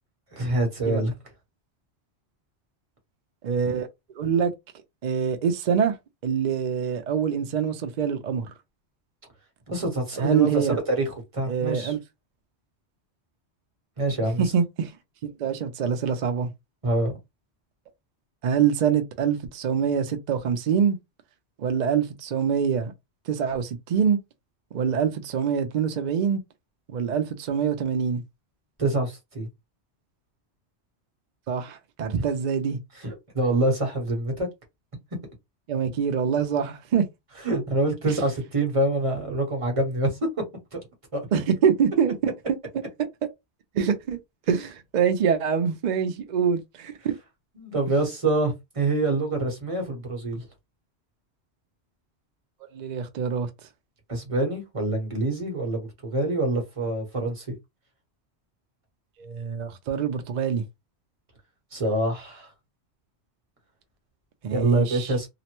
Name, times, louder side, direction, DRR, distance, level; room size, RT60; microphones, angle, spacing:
voice 1, 0.3-1.1 9.7-11.9 14.0-14.5 16.8-17.2 28.8-29.5 32.2-32.3 32.9-34.5 37.4-40.2 40.7-40.8 41.1-41.3 47.6-50.4 54.1-57.5 61.7-62.5 64.5-65.3, right 2 dB, 30° right, 1.0 m, -26 dB
voice 2, 3.4-3.9 4.2-4.5 5.0-6.0 6.2-8.5 10.2-10.8 11.5-12.0 14.4-14.9 15.2-16.5 18.4-21.0 21.6-22.9 23.3-24.2 24.7-26.4 26.9-28.2 31.5-32.8 35.7-37.0 41.3-42.3 43.7-44.2 44.5-47.1 52.7-53.5 59.2-60.6 64.4-65.1, right 7 dB, 55° right, 0.5 m, -25 dB
2.9 x 2.1 x 2.9 m
omnidirectional pair, 1.1 m